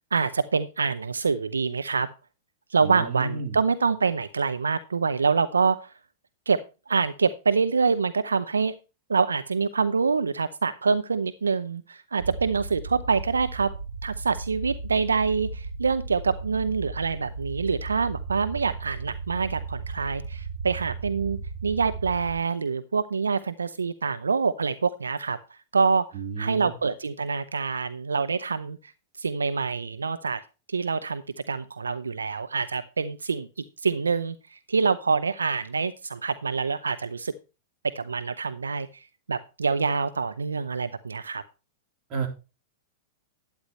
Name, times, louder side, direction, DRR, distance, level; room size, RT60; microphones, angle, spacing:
voice 1, 0.1-2.1 2.7-5.9 6.5-6.6 6.9-8.7 9.1-13.7 14.0-25.4 25.7-26.1 26.4-28.8 29.2-30.4 30.7-33.5 33.8-37.3 38.0-41.4, right 5 dB, 90° right, 13 dB, 0.5 m, -26 dB
voice 2, 2.8-3.6 26.2-26.7 42.1-42.3, right 5 dB, 40° right, 2 dB, 3.6 m, -31 dB
sound 1, 12.2-22.4, right 4 dB, 60° right, 3.0 m, -36 dB
11.5 x 9.7 x 3.1 m, 0.31 s
hypercardioid pair, 105°, 0 cm